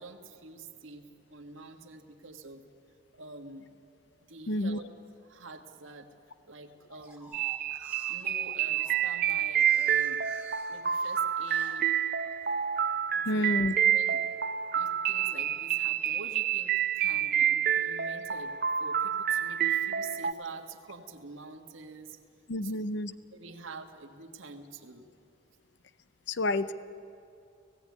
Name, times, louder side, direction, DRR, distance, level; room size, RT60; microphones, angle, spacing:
voice 1, 0.0-2.6 3.1-3.7 4.3-4.8 5.3-6.1 6.5-7.3 8.1-10.2 10.7-11.9 13.2-13.5 13.9-14.2 14.7-18.5 18.8-22.2 22.6-22.8 23.3-25.1, right 4 dB, 80° right, 5 dB, 1.6 m, -46 dB
voice 2, 4.5-4.8 13.3-13.8 22.5-23.1 26.3-26.7, left 1 dB, 60° left, 14 dB, 0.6 m, -29 dB
sound 1, 6.9-12.7 13.2-13.9, right 2 dB, 5° right, 1.8 m, -53 dB
sound 2, 7.3-20.3, right 9 dB, 50° right, 0.6 m, -28 dB
17.5 x 16.5 x 9.5 m, 2.6 s
head